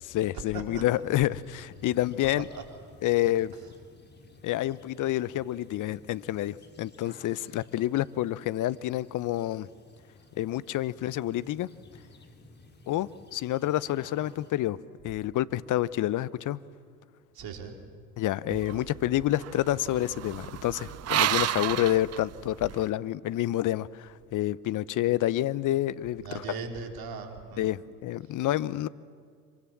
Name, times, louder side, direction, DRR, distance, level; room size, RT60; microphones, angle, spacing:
voice 1, 0.0-2.4 3.0-3.5 4.4-9.7 10.4-11.7 12.9-14.8 15.0-16.6 18.2-26.2 27.6-28.9, left 14 dB, 45° left, 19 dB, 0.8 m, -28 dB
voice 2, 0.5-0.9 2.4-2.6 17.3-17.8 26.2-27.7 28.2-28.3, right 5 dB, 50° right, 5 dB, 3.6 m, -39 dB
sound 1, 0.8-14.5, left 2 dB, 20° left, 3.3 m, -55 dB
sound 2, 18.5-22.9, right 13 dB, 35° right, 0.6 m, -32 dB
25.5 x 23.5 x 7.3 m, 2.1 s
hypercardioid pair, 65°, 46 cm